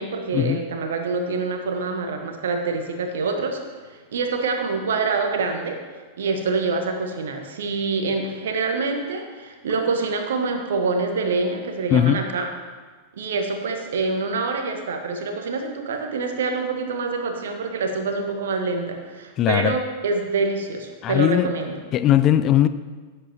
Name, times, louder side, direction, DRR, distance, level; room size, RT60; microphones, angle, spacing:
voice 1, 0.0-3.6 4.1-5.8 6.2-12.5 13.2-21.7, right 4 dB, 60° right, 5 dB, 1.3 m, -26 dB
voice 2, 19.4-19.8 21.0-21.5 21.9-22.7, left 11 dB, 35° left, 12 dB, 0.4 m, -19 dB
16.0 x 7.9 x 3.0 m, 1.4 s
figure-of-eight pair, 90°, 0 cm